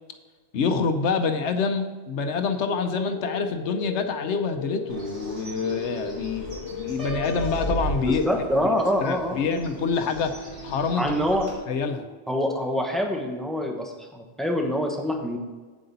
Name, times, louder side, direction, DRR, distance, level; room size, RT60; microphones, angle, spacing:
voice 1, 0.5-8.3 9.0-11.2 11.7-12.0, left 5 dB, 85° left, 7 dB, 1.0 m, -26 dB
sound 1, 2.1-12.1, left 4 dB, 70° left, 1.5 m, -38 dB
Bird, 4.9-11.5, right 2 dB, 85° right, 2.3 m, -37 dB
Piano, 7.0-8.9, left 3 dB, 30° right, 2.3 m, -36 dB
voice 2, 8.1-9.6 10.9-11.5 12.3-15.4, equal, ahead, 2 dB, 1.0 m, -26 dB
8.4 x 7.7 x 4.0 m, 1.4 s
omnidirectional pair, 1.2 m